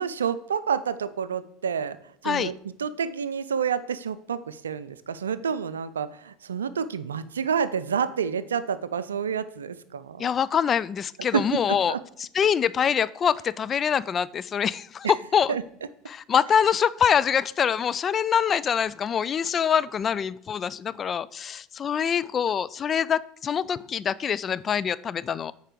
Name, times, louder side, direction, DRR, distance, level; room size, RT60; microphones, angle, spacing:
voice 1, 0.0-2.0 2.2-10.3 11.3-12.0 15.5-15.6, right 7 dB, 90° right, 15 dB, 0.4 m, -29 dB
voice 2, 10.2-11.9 12.2-15.5 16.1-25.5, left 8 dB, 35° left, 18 dB, 0.3 m, -25 dB
9.0 x 4.7 x 5.1 m, 0.72 s
hypercardioid pair, 80°, 0 cm